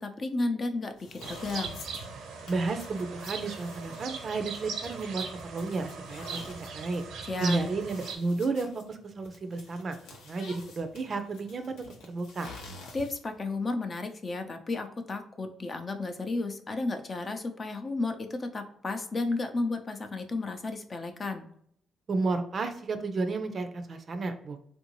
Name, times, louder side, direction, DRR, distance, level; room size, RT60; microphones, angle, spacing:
voice 1, 0.0-1.8 7.2-7.6 12.9-21.5, left 3 dB, 35° left, 6 dB, 0.6 m, -33 dB
sound 1, 0.9-13.4, left 2 dB, 85° left, 0.8 m, -49 dB
sound 2, 1.2-8.2, right 5 dB, 85° right, 0.7 m, -40 dB
voice 2, 2.5-7.0 7.4-10.0 10.2-12.5 22.1-24.6, right 3 dB, 45° right, 7 dB, 0.5 m, -32 dB
3.5 x 2.6 x 3.0 m, 0.68 s
cardioid pair, 90°, 0 cm